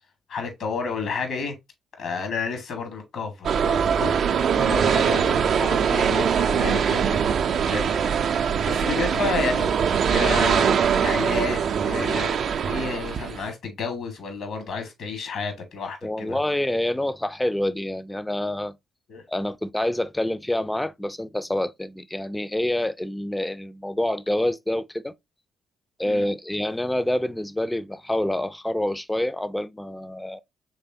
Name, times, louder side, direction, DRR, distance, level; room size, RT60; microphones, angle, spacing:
voice 1, 0.3-1.5 2.0-7.2 7.5-9.8 10.1-12.4 12.6-16.4 19.1-19.2 26.0-26.2, left 5 dB, 65° left, 1.5 m, -31 dB
sound 1, 3.4-13.5, right 7 dB, 60° right, 0.4 m, -22 dB
voice 2, 16.0-18.8 19.3-25.1 26.0-30.4, left 1 dB, 10° left, 0.4 m, -27 dB
4.0 x 3.3 x 2.7 m
hypercardioid pair, 45°, 0 cm